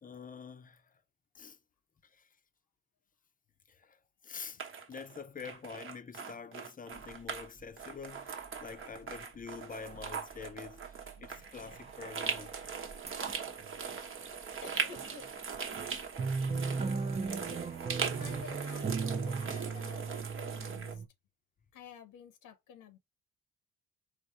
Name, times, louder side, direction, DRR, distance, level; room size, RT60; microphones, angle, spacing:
voice 1, 0.0-0.8 1.3-1.6 2.1-2.3 3.7-4.0 4.2-4.6 4.9-10.9 11.2-12.5, left 6 dB, 30° left, 0.6 m, -46 dB
sound 1, 4.6-7.5 7.8-21.0, right 6 dB, 45° right, 1.0 m, -40 dB
sound 2, 7.0-7.6 8.0-8.1 8.5-9.6 9.9-12.0 12.4-13.9 14.4-14.6 15.0-15.2 15.5-21.1, right 4 dB, 20° right, 0.6 m, -38 dB
voice 2, 14.3-15.3 18.2-21.0 21.7-23.0, left 6 dB, 90° left, 1.0 m, -52 dB
4.0 x 2.6 x 4.2 m
cardioid pair, 90°, 30 cm